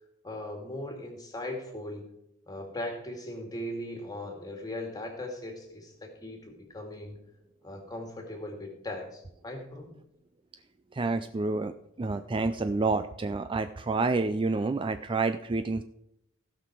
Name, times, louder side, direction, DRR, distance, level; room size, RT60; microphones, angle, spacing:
voice 1, 0.2-2.1 2.5-7.2 7.6-9.9, left 1 dB, 20° left, 3 dB, 2.1 m, -39 dB
voice 2, 10.9-11.7 12.0-15.8, right 3 dB, 25° right, 9 dB, 0.3 m, -28 dB
16.0 x 5.9 x 4.6 m, 0.80 s
head